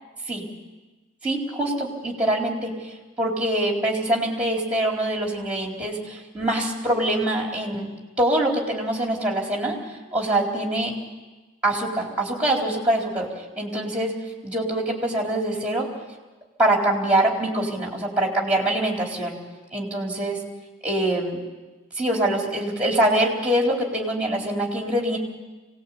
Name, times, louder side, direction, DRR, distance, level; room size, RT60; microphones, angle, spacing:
voice 1, 1.2-2.9 3.2-7.9 8.2-9.8 10.1-10.9 11.6-13.3 13.6-14.2 14.4-15.9 16.6-19.4 19.7-20.4 20.8-21.4 22.0-25.2, right 1 dB, 5° right, 0 dB, 4.3 m, -24 dB
25.5 x 18.5 x 8.7 m, 1.2 s
head